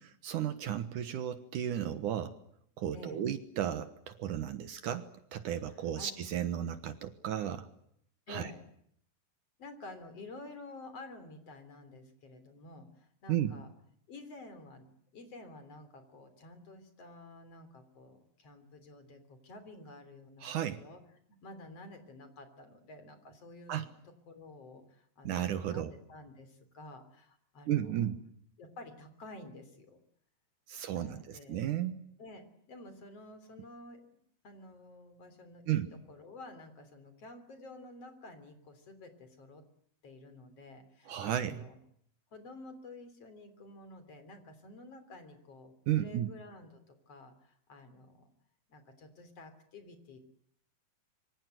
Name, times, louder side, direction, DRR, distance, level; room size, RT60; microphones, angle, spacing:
voice 1, 0.0-2.3 2.8-7.7 8.3-8.5 13.3-13.5 20.4-20.8 23.7-23.9 25.2-25.9 27.7-28.2 30.7-32.0 35.7-35.9 41.1-41.6 45.9-46.3, right 11 dB, 65° right, 11 dB, 2.5 m, -34 dB
voice 2, 5.7-6.1 8.3-8.6 9.6-13.7 14.1-14.9 15.1-21.0 21.4-23.9 24.3-28.1 28.6-30.0 30.8-31.6 32.2-34.2 34.4-39.6 40.0-41.8 42.3-48.3 48.7-50.2, left 2 dB, 45° left, 9 dB, 4.2 m, -51 dB
26.0 x 24.5 x 7.9 m, 0.70 s
omnidirectional pair, 4.2 m